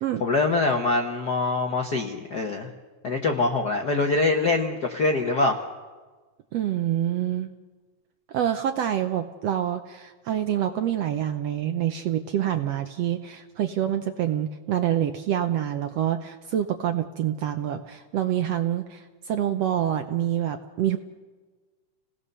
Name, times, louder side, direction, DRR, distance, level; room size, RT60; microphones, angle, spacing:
voice 1, 0.2-2.7 3.0-5.6, left 3 dB, 60° left, 4 dB, 1.0 m, -24 dB
voice 2, 6.5-7.5 8.3-21.0, right 10 dB, 70° right, 7 dB, 1.6 m, -26 dB
30.0 x 18.0 x 6.8 m, 1.3 s
omnidirectional pair, 3.7 m